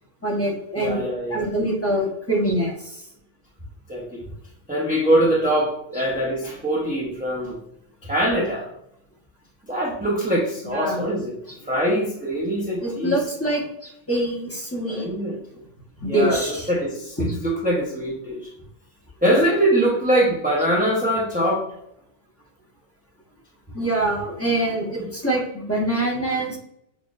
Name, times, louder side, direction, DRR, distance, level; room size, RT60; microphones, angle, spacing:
voice 1, 0.2-1.0 1.3-3.0 10.7-11.0 12.8-15.1 16.0-16.7 17.2-17.3 23.7-26.6, right 1 dB, 10° left, -3 dB, 0.9 m, -24 dB
voice 2, 0.8-1.5 3.9-4.2 4.7-7.6 8.0-8.7 9.7-11.4 11.6-13.2 14.9-15.4 16.0-18.5 19.2-21.6 25.0-25.1, right 1 dB, 10° right, -4 dB, 0.4 m, -23 dB
6.6 x 2.5 x 2.4 m, 0.76 s
omnidirectional pair, 1.5 m